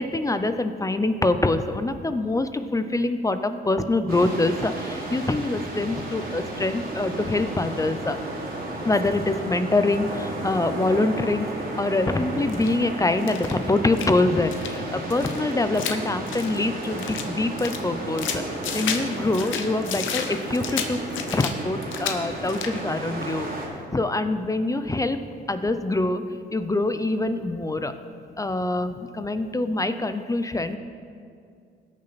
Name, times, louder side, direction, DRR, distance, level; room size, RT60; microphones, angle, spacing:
voice 1, 0.0-8.2 8.9-11.5 11.8-18.4 18.7-21.0 21.3-23.5 23.9-25.2 25.5-27.9 28.4-30.8, left 2 dB, 15° left, 10 dB, 0.6 m, -25 dB
sound 1, 4.1-23.7, right 2 dB, 50° right, 2.8 m, -33 dB
sound 2, 12.5-12.8 13.2-14.2 14.5-14.7 15.1-17.3 17.6-19.1 19.3-21.5 21.8-22.2 22.5-22.8, left 7 dB, 75° left, 1.0 m, -32 dB
19.0 x 6.6 x 4.1 m, 2.3 s
cardioid pair, 90°, 20 cm